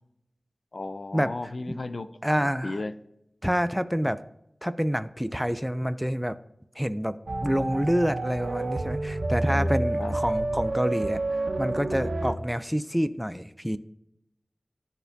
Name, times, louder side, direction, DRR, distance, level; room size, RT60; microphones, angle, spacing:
voice 1, 0.7-3.0 9.4-10.1, left 2 dB, 65° left, 13 dB, 0.4 m, -35 dB
voice 2, 2.2-2.8 3.4-4.2 4.6-6.4 6.8-7.2 7.4-11.2 11.6-13.8, equal, ahead, 13 dB, 0.4 m, -27 dB
sound 1, 7.3-12.4, right 2 dB, 70° right, 0.7 m, -29 dB
12.5 x 4.3 x 2.7 m, 0.81 s
wide cardioid pair, 50°, 0 cm